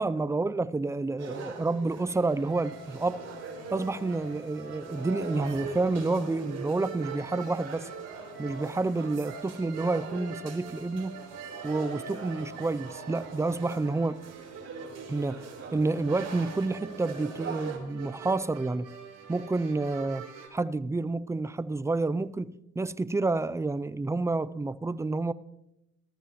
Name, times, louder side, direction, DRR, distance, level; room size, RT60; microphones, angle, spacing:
voice 1, 0.0-3.2 3.7-7.9 8.4-11.2 11.6-14.2 15.1-15.5 15.7-18.9 19.3-25.3, right 3 dB, 10° right, 0.4 m, -29 dB
sound 1, 1.2-17.8, right 4 dB, 55° right, 3.9 m, -43 dB
sound 2, 2.1-20.5, right 5 dB, 90° right, 4.9 m, -45 dB
19.0 x 13.5 x 3.0 m
cardioid pair, 90°, 30 cm